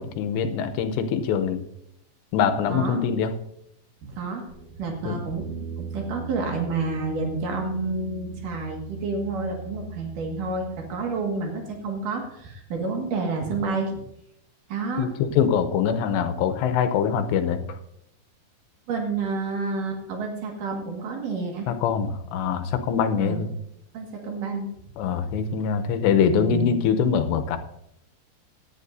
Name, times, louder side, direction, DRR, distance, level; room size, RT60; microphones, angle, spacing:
voice 1, 0.0-1.6 2.3-3.3 5.1-5.2 15.0-17.6 21.7-23.5 25.0-27.6, left 7 dB, 85° left, 7 dB, 2.9 m, -23 dB
voice 2, 4.0-4.5 4.8-5.5 5.8-14.0 14.7-15.4 18.9-21.7 23.2-23.4 23.9-24.7 26.2-26.8, right 4 dB, 55° right, 1 dB, 2.9 m, -29 dB
sound 1, 4.5-11.9, right 4 dB, 75° right, 3.6 m, -38 dB
18.0 x 11.0 x 2.6 m, 0.77 s
omnidirectional pair, 5.2 m